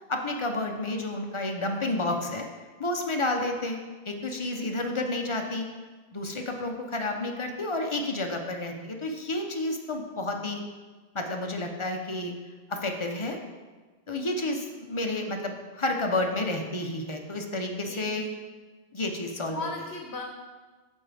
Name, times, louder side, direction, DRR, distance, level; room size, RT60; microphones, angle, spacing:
voice 1, 0.1-2.4 2.8-3.8 4.1-5.7 6.1-10.6 11.1-12.3 12.7-13.4 14.1-18.3 18.9-19.6, left 2 dB, 30° left, 3 dB, 0.7 m, -30 dB
voice 2, 17.9-18.3 19.4-20.2, left 3 dB, 70° left, 2 dB, 1.0 m, -37 dB
8.5 x 6.3 x 3.4 m, 1.3 s
omnidirectional pair, 1.1 m